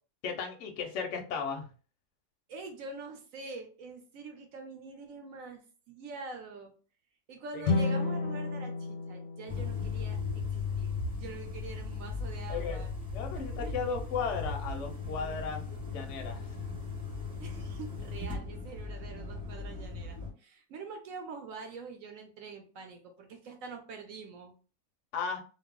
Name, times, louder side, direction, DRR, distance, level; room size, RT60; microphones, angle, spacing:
voice 1, 0.2-1.7 7.5-7.6 12.5-12.8 13.1-16.4 25.1-25.4, left 5 dB, 65° left, 3 dB, 0.8 m, -35 dB
voice 2, 2.5-5.6 5.9-6.7 7.3-12.9 13.3-13.7 17.4-24.5, right 4 dB, 70° right, 4 dB, 0.9 m, -45 dB
sound 1, 7.6-10.9, left 3 dB, 85° left, 1.1 m, -33 dB
sound 2, 9.5-20.3, left 4 dB, 25° right, 0.9 m, -37 dB
2.6 x 2.0 x 3.5 m, 0.38 s
omnidirectional pair, 1.6 m